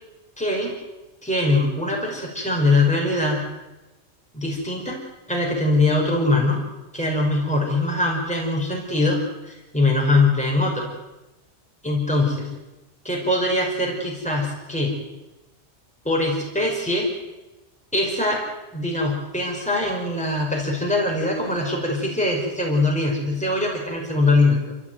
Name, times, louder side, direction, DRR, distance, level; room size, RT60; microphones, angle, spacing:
voice 1, 0.4-0.7 1.2-3.4 4.3-5.0 5.3-6.6 6.9-9.2 9.5-10.9 11.8-12.5 13.0-15.0 16.1-17.1 17.9-18.4 18.7-24.6, left 2 dB, 5° left, -1 dB, 5.4 m, -22 dB
28.0 x 15.5 x 9.4 m, 1.0 s
omnidirectional pair, 1.2 m